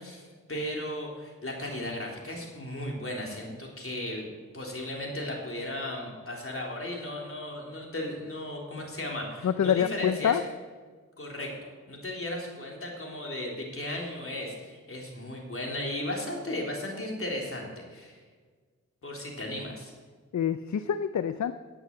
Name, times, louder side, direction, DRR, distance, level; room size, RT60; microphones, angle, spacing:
voice 1, 0.0-4.3 4.5-10.4 11.2-11.5 11.9-18.2 19.0-19.9, left 1 dB, 40° left, -1 dB, 3.7 m, -35 dB
voice 2, 9.4-10.4 20.3-21.5, left 8 dB, 60° left, 11 dB, 0.6 m, -26 dB
10.5 x 8.0 x 7.7 m, 1.5 s
cardioid pair, 40°, 33 cm